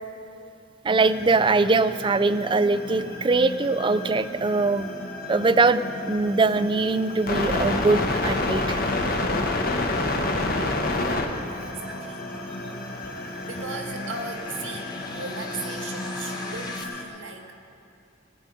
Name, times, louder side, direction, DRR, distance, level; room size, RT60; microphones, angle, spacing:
voice 1, 0.8-4.9 5.3-8.8, right 3 dB, 25° right, 13 dB, 0.4 m, -22 dB
sound 1, 1.0-17.0, left 2 dB, 50° left, 1.2 m, -30 dB
sound 2, 4.3-16.8, left 2 dB, 20° left, 1.2 m, -45 dB
voice 2, 10.9-11.3 11.6-12.2 13.4-17.6, right 3 dB, 90° right, 2 dB, 1.7 m, -38 dB
19.5 x 9.6 x 5.3 m, 2.6 s
head